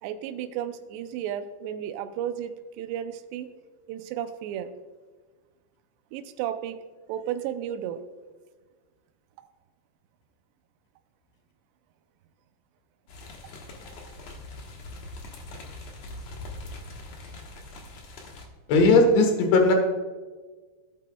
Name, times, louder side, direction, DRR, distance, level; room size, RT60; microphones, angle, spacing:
voice 1, 0.0-3.5 3.9-4.7 6.1-6.8 7.1-8.0 9.4-9.5 14.0-14.1, right 10 dB, 80° right, 8 dB, 2.7 m, -33 dB
sound 1, 13.1-18.5, left 2 dB, 65° left, 1.7 m, -42 dB
voice 2, 18.7-19.7, left 3 dB, 90° left, 4 dB, 3.8 m, -18 dB
17.0 x 9.0 x 2.3 m, 1.3 s
omnidirectional pair, 5.1 m